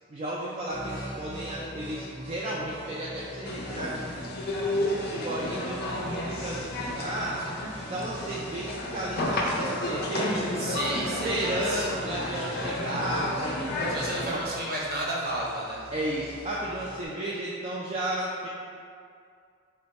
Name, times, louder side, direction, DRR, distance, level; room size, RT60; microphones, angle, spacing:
voice 1, 0.1-4.3 4.7-7.4 7.9-10.5 11.0-13.9 14.3-14.5 15.9-18.5, right 1 dB, 30° right, -6 dB, 0.3 m, -33 dB
sound 1, 0.7-17.1, equal, 75° right, 1.0 m, -44 dB
sound 2, 3.5-14.3, left 1 dB, 50° left, 0.4 m, -32 dB
voice 2, 10.5-11.9 13.9-15.9, right 1 dB, 50° right, -4 dB, 0.7 m, -32 dB
3.4 x 2.2 x 4.0 m, 2.3 s
head